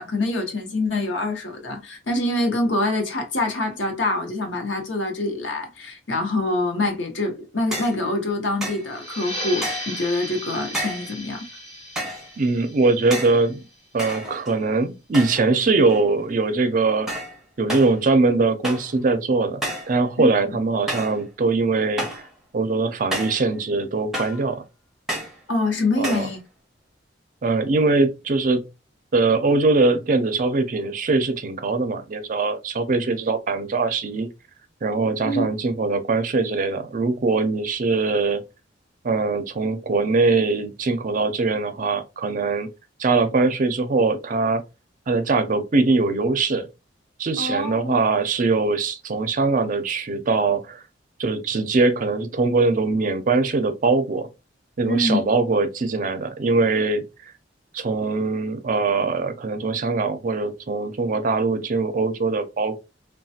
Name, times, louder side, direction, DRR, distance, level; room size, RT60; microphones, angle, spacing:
voice 1, 0.0-11.5 20.2-20.3 25.5-26.4 35.2-35.5 47.4-48.0 54.9-55.2, left 2 dB, 85° left, 0.8 m, -25 dB
sound 1, 7.7-8.0 8.6-8.9 9.6-10.0 10.7-11.1 12.0-12.3 13.1-13.4 14.0-14.6 15.1-15.5 15.8-16.3 17.1-17.4 17.7-18.0 18.6-19.0 19.6-20.0 20.9-21.2 22.0-22.3 23.1-23.5 24.1-24.5 25.1-25.4 26.0-26.3, right 1 dB, ahead, 0.8 m, -30 dB
sound 2, 8.8-14.1, equal, 35° left, 1.8 m, -36 dB
voice 2, 12.4-13.6 13.9-17.1 17.6-19.6 19.9-22.2 22.5-24.6 26.0-26.3 27.4-28.7 29.1-34.3 34.8-38.4 39.0-42.7 43.0-44.6 45.1-46.7 47.2-50.8 51.2-54.3 54.8-57.0 57.7-62.8, right 3 dB, 45° right, 0.5 m, -22 dB
3.1 x 2.2 x 2.7 m
head